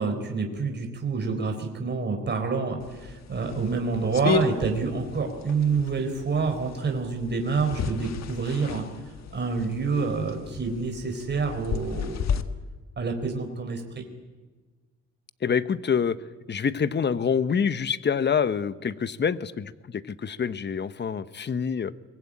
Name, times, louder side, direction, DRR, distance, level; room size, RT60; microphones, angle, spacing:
voice 1, 0.0-8.9 9.3-12.3 13.0-14.0, right 4 dB, 35° right, 4 dB, 4.0 m, -27 dB
sound 1, 2.8-12.4, left 6 dB, 60° left, 1.5 m, -34 dB
voice 2, 15.4-16.2 16.5-21.9, left 6 dB, 35° left, 14 dB, 1.0 m, -26 dB
23.0 x 19.5 x 8.8 m, 1.3 s
cardioid pair, 90°, 30 cm